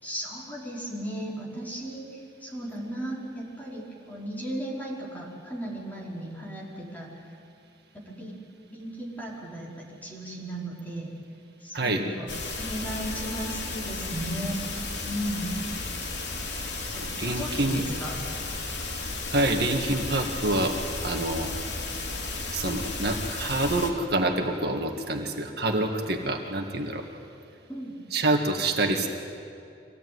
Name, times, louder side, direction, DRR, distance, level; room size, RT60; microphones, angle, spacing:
voice 1, 0.0-7.1 8.1-8.3 8.7-11.1 11.6-14.6 15.0-15.5 16.5-18.2 27.7-27.9, right 1 dB, 10° left, -5 dB, 4.9 m, -36 dB
sound 1, 12.3-23.9, left 3 dB, 75° left, 3.2 m, -34 dB
voice 2, 17.2-17.8 19.3-21.6 22.5-27.1 28.1-29.1, right 2 dB, 65° right, 2 dB, 1.9 m, -27 dB
25.0 x 17.5 x 9.5 m, 2.5 s
head